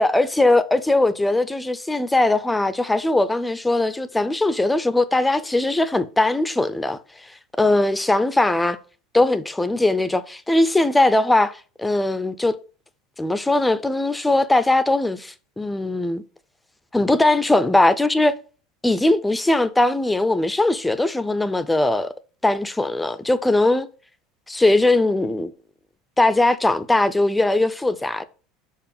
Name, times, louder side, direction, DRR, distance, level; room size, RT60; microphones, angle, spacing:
voice 1, 0.0-7.0 7.6-8.8 9.1-12.6 13.2-16.2 16.9-18.4 18.8-22.1 22.4-23.9 24.5-25.5 26.2-28.2, left 2 dB, 5° left, 0.3 m, -20 dB
5.3 x 4.8 x 5.1 m
cardioid pair, 170°, 0 cm